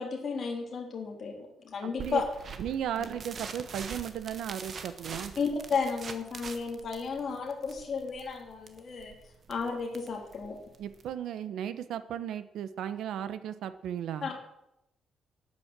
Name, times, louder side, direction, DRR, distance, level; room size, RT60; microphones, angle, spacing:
voice 1, 0.0-2.2 3.0-3.1 5.4-9.1 9.5-10.6 14.2-14.3, left 5 dB, 40° left, 1 dB, 3.0 m, -33 dB
voice 2, 1.8-2.2 2.6-5.3 10.8-14.3, right 9 dB, 85° right, 12 dB, 1.0 m, -35 dB
sound 1, 2.0-11.1, right 5 dB, 35° right, 1.3 m, -44 dB
13.0 x 9.7 x 7.4 m, 0.87 s
cardioid pair, 180°, 0 cm